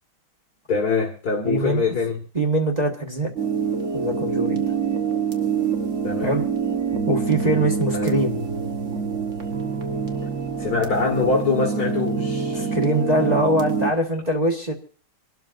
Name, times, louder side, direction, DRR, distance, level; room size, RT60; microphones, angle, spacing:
voice 1, 0.7-2.2 6.0-6.3 7.9-8.1 10.6-12.7, left 4 dB, 45° left, 0 dB, 2.3 m, -24 dB
voice 2, 1.4-1.8 2.3-3.3 3.9-4.7 6.2-6.4 7.1-8.4 12.5-14.7, right 1 dB, 20° right, -1 dB, 1.3 m, -23 dB
sound 1, 3.4-13.9, right 6 dB, 40° right, 1.4 m, -25 dB
27.0 x 12.5 x 2.6 m, 0.41 s
omnidirectional pair, 2.4 m